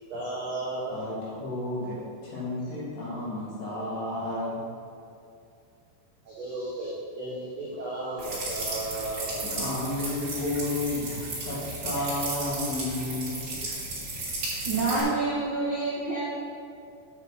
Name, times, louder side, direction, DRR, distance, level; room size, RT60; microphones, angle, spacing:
voice 1, 0.1-1.0 6.2-9.5, right 2 dB, 90° right, -6 dB, 1.4 m, -34 dB
voice 2, 0.9-4.6 7.7-7.8 9.3-13.4, left 2 dB, 75° left, -8 dB, 4.8 m, -32 dB
sound 1, 8.2-15.0, right 2 dB, 30° right, 2.5 m, -34 dB
voice 3, 14.6-16.4, right 3 dB, 55° right, -10 dB, 1.4 m, -27 dB
8.1 x 6.4 x 5.7 m, 2.4 s
omnidirectional pair, 5.0 m